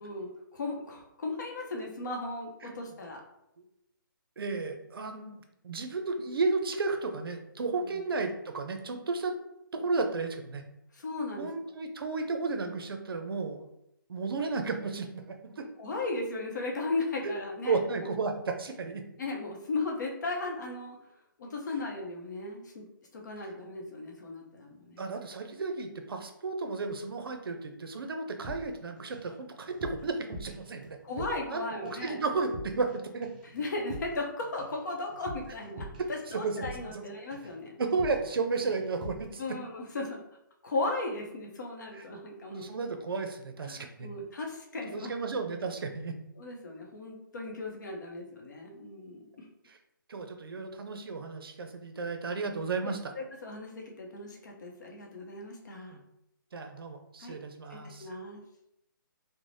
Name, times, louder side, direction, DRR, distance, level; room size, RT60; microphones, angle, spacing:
voice 1, 0.0-3.2 7.8-8.0 10.9-11.5 15.8-18.1 19.2-21.0 21.4-22.9 23.1-25.0 31.0-32.2 33.5-35.9 36.3-37.7 39.4-40.2 40.6-43.0 43.7-45.1 46.4-49.5 52.8-56.0 57.2-57.4 57.7-58.4, left 2 dB, 55° left, 0 dB, 0.6 m, -36 dB
voice 2, 4.4-9.4 9.7-10.6 11.4-13.7 14.1-15.7 17.2-17.3 17.6-19.0 25.0-33.3 36.0-37.1 37.8-39.6 41.9-42.0 42.5-44.1 44.9-46.2 49.7-49.8 50.1-53.1 55.9-56.0 56.5-58.1, right 4 dB, 85° right, 5 dB, 0.5 m, -33 dB
sound 1, 28.4-29.4 29.6-31.6 31.9-32.2 32.4-33.0 33.2-37.0 37.3-37.6 37.9-38.4 38.7-39.3, right 1 dB, 20° right, 0.4 m, -45 dB
3.2 x 2.0 x 2.6 m, 0.81 s
hypercardioid pair, 165°, 12 cm